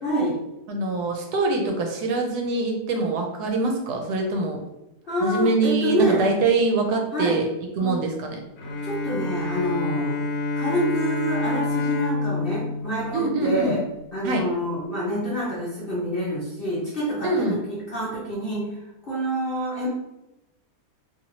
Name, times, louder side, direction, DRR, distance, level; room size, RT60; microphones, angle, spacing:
voice 1, 0.0-0.4 5.1-6.3 7.1-7.4 7.8-7.9 8.8-10.2 10.6-13.8 14.1-18.6 19.1-19.9, equal, 45° left, -7 dB, 0.8 m, -27 dB
voice 2, 0.7-4.6 5.2-7.5 7.8-8.4 13.1-13.8 14.2-14.4 17.2-17.6, right 3 dB, 75° right, 2 dB, 1.1 m, -24 dB
Bowed string instrument, 8.6-14.0, left 3 dB, 70° left, 1.1 m, -28 dB
2.8 x 2.8 x 2.7 m, 0.94 s
omnidirectional pair, 1.7 m